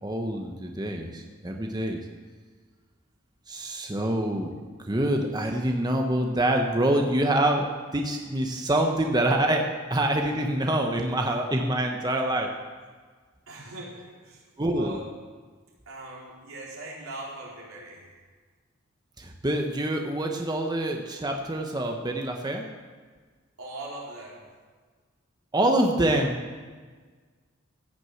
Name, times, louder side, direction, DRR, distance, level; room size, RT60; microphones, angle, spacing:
voice 1, 0.0-2.0 3.5-4.5 4.8-12.5 14.6-15.0 19.2-22.6 25.5-26.4, right 1 dB, 20° right, 2 dB, 0.9 m, -26 dB
voice 2, 13.5-14.4 14.7-15.1 15.9-18.3 23.6-24.6, right 1 dB, 85° right, -4 dB, 3.5 m, -41 dB
15.5 x 6.2 x 7.8 m, 1.5 s
head